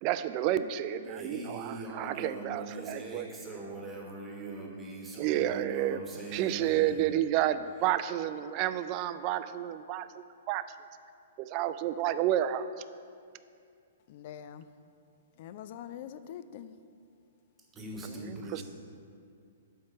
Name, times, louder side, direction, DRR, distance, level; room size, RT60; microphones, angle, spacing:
voice 1, 0.0-3.3 5.2-6.0 6.3-10.6 11.4-12.7 18.0-18.6, right 12 dB, 40° right, 12 dB, 0.3 m, -30 dB
voice 2, 1.0-7.1 17.7-18.6, right 2 dB, 15° right, -1 dB, 1.2 m, -41 dB
voice 3, 14.1-14.6 15.4-16.7, left 10 dB, 50° left, 12 dB, 0.4 m, -44 dB
6.3 x 4.7 x 6.3 m, 2.4 s
hypercardioid pair, 120°, 0 cm